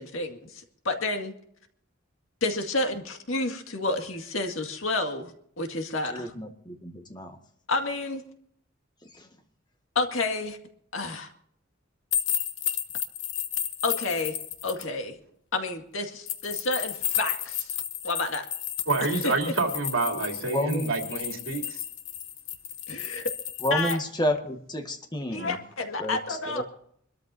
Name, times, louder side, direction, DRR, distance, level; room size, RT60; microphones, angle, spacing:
voice 1, 0.0-1.3 2.4-6.3 7.7-8.2 10.0-10.6 10.9-11.3 13.8-14.4 14.6-15.2 15.5-17.8 18.0-18.4 19.2-19.3 22.9-23.2 23.7-24.0 25.3-26.6, left 2 dB, 90° left, 4 dB, 2.1 m, -30 dB
voice 2, 6.1-7.4 9.1-9.3 20.4-20.9 23.6-25.6 26.0-26.6, left 1 dB, 20° left, 4 dB, 1.7 m, -30 dB
sound 1, 12.1-14.8 16.3-23.9, left 10 dB, 65° left, 1.3 m, -32 dB
voice 3, 18.9-21.8, right 3 dB, 80° right, 2 dB, 3.3 m, -28 dB
26.5 x 13.5 x 2.7 m, 0.69 s
head